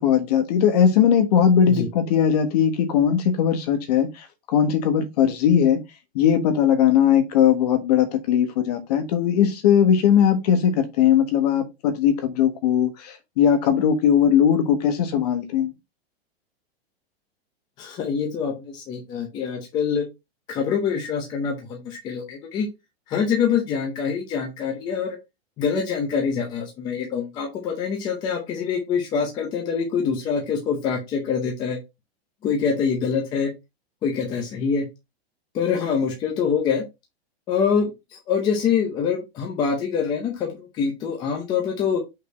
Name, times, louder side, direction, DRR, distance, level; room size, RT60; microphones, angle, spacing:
voice 1, 0.0-5.8 6.1-15.7, left 8 dB, 40° left, 1.3 m, -19 dB
voice 2, 17.8-20.0 20.5-22.7 23.1-25.2 25.6-31.8 32.4-33.5 34.0-34.9 35.5-36.8 37.5-42.0, left 6 dB, 15° left, 0.7 m, -25 dB
5.6 x 4.1 x 4.2 m
supercardioid pair, 180°, 31 cm